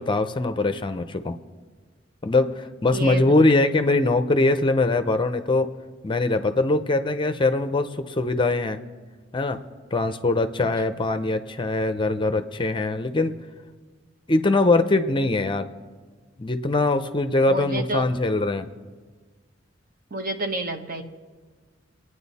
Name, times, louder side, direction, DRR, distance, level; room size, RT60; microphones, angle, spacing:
voice 1, 0.0-1.4 2.2-5.7 6.0-8.8 9.3-9.6 9.9-13.3 14.3-15.7 16.4-18.7, left 2 dB, 25° left, 9 dB, 0.6 m, -22 dB
voice 2, 2.9-3.5 10.6-10.7 17.5-18.1 20.1-21.0, right 1 dB, 50° right, 6 dB, 1.1 m, -29 dB
26.0 x 9.6 x 4.1 m, 1.5 s
head